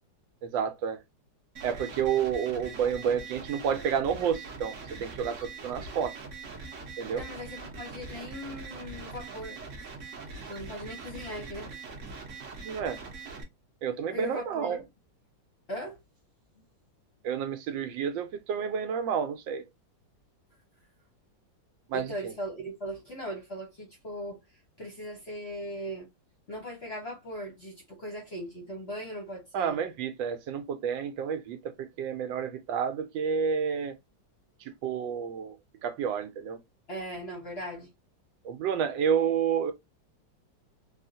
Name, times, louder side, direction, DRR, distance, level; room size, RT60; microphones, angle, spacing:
voice 1, 0.4-1.0 1.6-6.2 7.0-7.2 12.6-13.0 13.8-14.8 17.2-19.6 21.9-22.1 29.5-33.9 34.8-35.6 35.8-36.6 38.4-39.7, right 7 dB, 80° right, 1.3 m, -30 dB
sound 1, 1.6-13.4, right 4 dB, 50° right, 1.0 m, -42 dB
voice 2, 7.1-9.6 10.5-11.7 14.1-14.8 15.7-16.0 21.9-24.4 24.8-26.1 26.5-29.8 36.9-37.9, equal, 45° left, 0.8 m, -39 dB
3.5 x 2.4 x 2.5 m
omnidirectional pair, 2.1 m